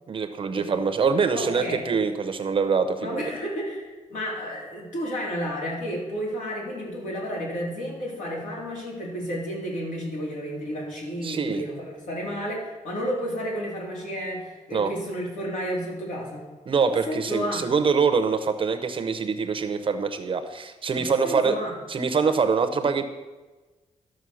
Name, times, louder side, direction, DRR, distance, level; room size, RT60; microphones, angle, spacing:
voice 1, 0.1-3.2 11.2-11.6 14.7-14.9 16.7-21.6 21.9-23.0, right 5 dB, 40° right, 9 dB, 0.8 m, -24 dB
voice 2, 1.3-1.9 3.0-16.5 17.1-17.7 21.0-21.8, equal, 70° left, -3 dB, 3.8 m, -32 dB
12.5 x 6.3 x 6.4 m, 1.2 s
wide cardioid pair, 175°, 14 cm